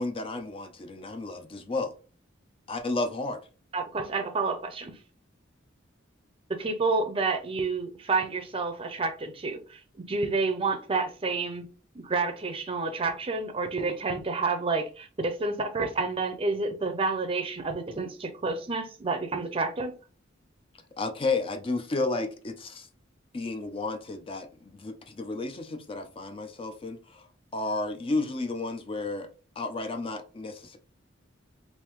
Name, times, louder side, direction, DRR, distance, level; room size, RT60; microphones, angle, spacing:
voice 1, 0.0-1.9 2.7-3.4 21.0-22.9 23.3-27.3 27.5-29.3 29.6-30.8, left 3 dB, 30° left, 0.4 m, -32 dB
voice 2, 3.7-4.9 6.6-9.8 10.1-11.6 11.9-19.9, right 3 dB, 30° right, 0.5 m, -29 dB
3.5 x 2.6 x 3.0 m
head